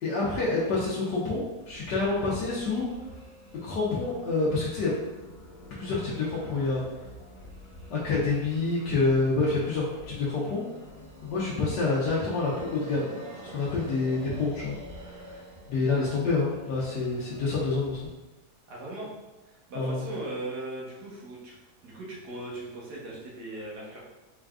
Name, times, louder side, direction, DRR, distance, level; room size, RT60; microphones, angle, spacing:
voice 1, 0.0-3.1 3.6-4.9 5.7-7.0 7.9-10.6 11.2-13.1 13.4-18.0 19.7-20.0, left 3 dB, 90° left, -7 dB, 1.4 m, -28 dB
sound 1, 1.6-18.1, equal, 45° right, 1.7 m, -48 dB
sound 2, 10.5-17.6, right 3 dB, 60° right, 1.2 m, -48 dB
voice 2, 18.7-19.1 19.4-21.6 21.8-24.0, right 2 dB, 80° right, -5 dB, 1.6 m, -38 dB
4.3 x 3.5 x 2.4 m, 1.1 s
omnidirectional pair, 1.7 m